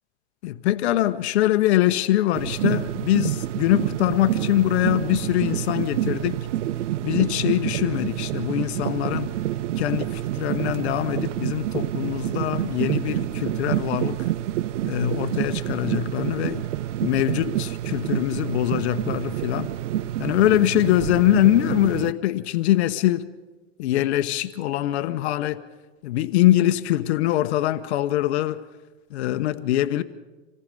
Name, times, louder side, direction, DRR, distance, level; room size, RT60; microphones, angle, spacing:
voice 1, 0.4-6.4 7.0-9.3 9.8-14.2 14.9-16.6 17.0-19.7 20.2-23.2 23.8-25.6 26.0-28.6 29.1-30.0, left 14 dB, 65° left, 1.1 m, -23 dB
sound 1, 2.3-22.1, right 13 dB, 85° right, 0.7 m, -28 dB
27.0 x 18.0 x 5.4 m
supercardioid pair, 150°, 36 cm